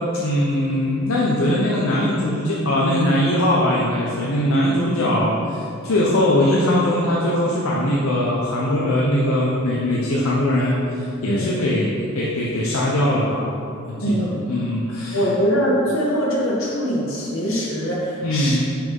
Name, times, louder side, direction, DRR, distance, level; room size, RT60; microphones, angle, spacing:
voice 1, 0.2-13.6 14.1-14.2 14.5-15.2 18.2-18.6, left 1 dB, 90° left, -5 dB, 0.9 m, -21 dB
voice 2, 11.2-11.5 14.0-14.5 15.1-18.6, equal, 75° left, -4 dB, 1.8 m, -22 dB
5.8 x 5.7 x 5.5 m, 2.5 s
head